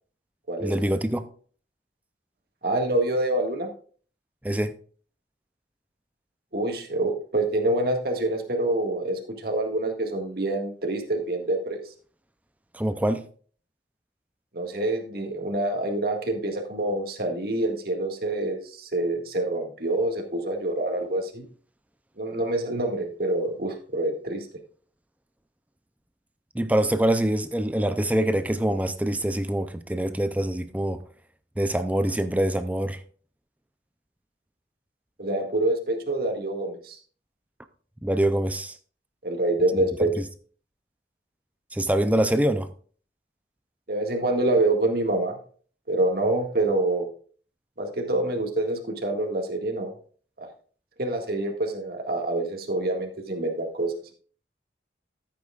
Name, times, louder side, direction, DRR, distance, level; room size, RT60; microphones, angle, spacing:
voice 1, 0.6-1.3 4.4-4.8 12.7-13.2 26.5-31.0 31.6-33.0 38.0-38.8 41.7-42.7, right 1 dB, 10° right, 0.5 m, -24 dB
voice 2, 2.6-3.7 6.5-11.8 14.5-21.4 22.2-24.5 35.2-37.0 39.2-40.1 43.9-45.3 45.9-47.1 47.8-49.9 50.4-50.5 51.0-53.9, right 2 dB, 60° right, 1.9 m, -26 dB
14.0 x 8.5 x 2.4 m
head